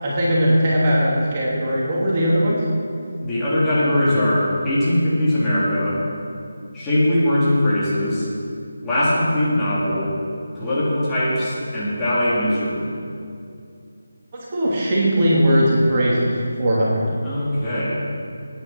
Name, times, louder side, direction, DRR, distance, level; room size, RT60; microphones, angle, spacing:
voice 1, 0.0-2.6 14.3-17.1, equal, 30° right, -6 dB, 2.7 m, -19 dB
voice 2, 3.2-6.0 6.7-8.3 8.8-10.2 10.6-13.0 17.2-18.0, left 1 dB, 10° left, -11 dB, 3.9 m, -21 dB
18.0 x 9.9 x 4.7 m, 2.4 s
figure-of-eight pair, 160°, 0 cm